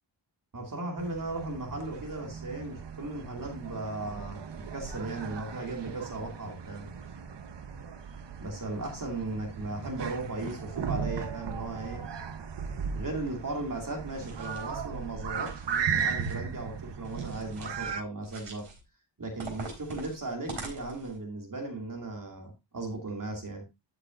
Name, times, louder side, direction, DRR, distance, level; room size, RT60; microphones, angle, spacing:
voice 1, 0.5-6.9 8.4-12.0 12.9-18.6 19.2-23.6, right 2 dB, 40° right, 1 dB, 2.5 m, -37 dB
sound 1, 1.0-18.0, right 6 dB, 60° right, 1.0 m, -37 dB
sound 2, 14.1-14.8 15.2-16.4 17.0-17.9 18.2-18.8 19.4-21.2, right 3 dB, 85° right, 4.1 m, -44 dB
12.5 x 6.5 x 2.5 m, 0.25 s
wide cardioid pair, 135°, 48 cm